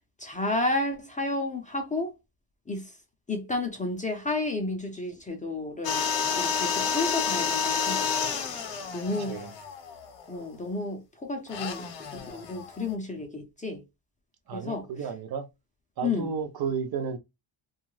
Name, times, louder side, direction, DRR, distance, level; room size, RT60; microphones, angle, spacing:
voice 1, 0.2-2.1 2.7-2.9 3.3-6.0 6.3-8.3 8.9-9.4 10.3-13.8 14.5-14.9 16.0-16.3, left 2 dB, 15° left, 0.4 m, -31 dB
sound 1, 5.8-10.4 11.5-12.9, left 6 dB, 60° left, 0.8 m, -30 dB
voice 2, 14.5-15.5 16.0-17.2, right 6 dB, 50° right, 0.5 m, -32 dB
2.6 x 2.3 x 3.0 m
wide cardioid pair, 160°, 47 cm